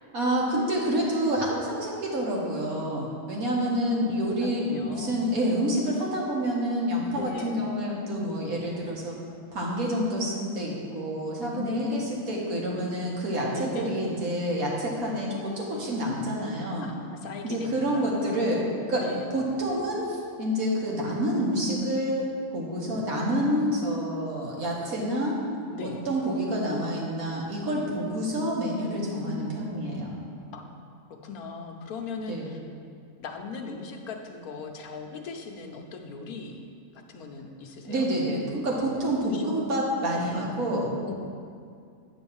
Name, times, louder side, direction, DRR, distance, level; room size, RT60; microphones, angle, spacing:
voice 1, 0.1-9.2 9.5-16.9 17.4-18.6 18.9-19.0 19.3-22.3 22.5-25.4 25.8-30.2 32.3-32.5 37.8-40.9, equal, 75° right, -3 dB, 1.9 m, -28 dB
voice 2, 3.1-3.7 4.4-5.2 7.1-7.6 11.5-12.1 13.5-13.9 16.8-18.5 19.0-19.3 22.8-23.0 25.7-26.0 29.2-29.6 30.5-32.6 33.2-36.6 37.1-38.0 38.9-39.4 40.1-40.4 41.1-41.2, left 4 dB, 85° left, 3 dB, 1.3 m, -39 dB
9.2 x 4.0 x 7.1 m, 2.3 s
omnidirectional pair, 1.5 m